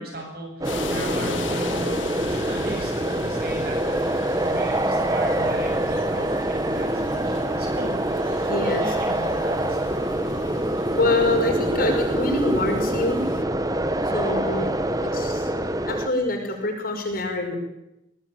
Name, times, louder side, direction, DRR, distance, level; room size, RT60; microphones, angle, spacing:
voice 1, 0.0-7.9 8.2-9.8 14.3-14.8, right 1 dB, 55° right, 2 dB, 8.0 m, -37 dB
sound 1, 0.6-13.4, left 5 dB, 85° left, 2.0 m, -40 dB
sound 2, 0.6-16.1, right 1 dB, 20° right, 1.3 m, -25 dB
voice 2, 8.4-8.8 11.0-13.2 14.1-15.5 15.9-17.6, left 2 dB, 50° left, 3 dB, 5.6 m, -25 dB
22.0 x 18.5 x 9.4 m, 0.87 s
head